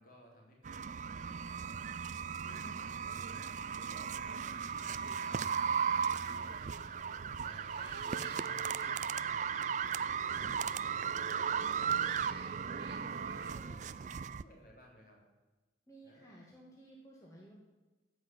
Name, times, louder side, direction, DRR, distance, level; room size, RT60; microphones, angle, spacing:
voice 1, 0.0-2.0 2.4-5.8 6.2-9.5 9.8-12.5 12.8-15.2 16.0-16.5, equal, 45° left, -1 dB, 3.7 m, -59 dB
sound 1, 0.6-14.4, right 7 dB, 40° right, 0.3 m, -36 dB
sound 2, 2.2-13.6, right 3 dB, 55° right, 1.1 m, -53 dB
voice 2, 2.5-2.9 12.6-13.1 15.9-17.5, right 1 dB, 15° left, -4 dB, 2.0 m, -54 dB
15.5 x 6.1 x 9.1 m, 1.2 s
head